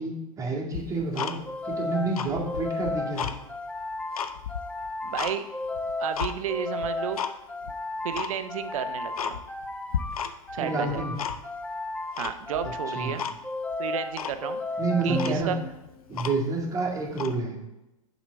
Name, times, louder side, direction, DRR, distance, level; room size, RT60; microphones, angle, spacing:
voice 1, 0.0-1.3 1.6-3.3 10.6-11.2 12.9-13.1 14.8-15.5 16.1-17.6, right 3 dB, 15° right, -1 dB, 2.0 m, -29 dB
Tick-tock, 0.7-1.7 2.1-3.4 3.8-5.4 5.7-6.3 6.8-7.3 7.6-7.7 8.1-8.3 8.7-8.8 9.1-9.7 9.9-10.6 10.8-11.6 12.2-12.7 13.2-13.4 13.7-13.8 14.1-14.4 14.9-15.0 15.1-16.6 17.1-17.4, left 8 dB, 75° left, 0.6 m, -33 dB
sound 1, 1.5-16.0, left 2 dB, 5° left, 0.6 m, -34 dB
voice 2, 5.0-5.5 6.0-7.2 8.0-9.4 10.5-11.0 12.2-13.2 13.8-14.6 15.0-15.6, right 9 dB, 65° right, 10 dB, 0.7 m, -32 dB
7.2 x 4.0 x 6.1 m, 0.95 s
hypercardioid pair, 100°, 19 cm